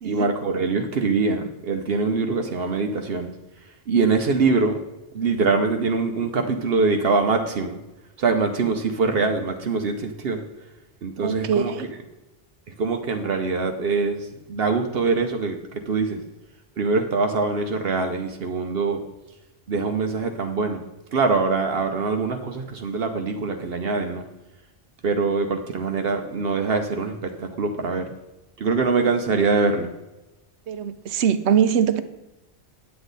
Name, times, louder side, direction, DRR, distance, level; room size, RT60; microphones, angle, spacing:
voice 1, 0.0-3.3 3.9-4.7 5.1-7.8 8.2-10.4 11.0-11.8 12.7-16.2 16.8-19.0 19.7-20.8 21.1-24.3 25.0-28.0 28.6-29.9, right 4 dB, 65° right, 1.0 m, -23 dB
voice 2, 11.2-11.9 30.7-32.0, right 8 dB, 90° right, 1.0 m, -22 dB
9.1 x 8.1 x 4.0 m
omnidirectional pair, 1.1 m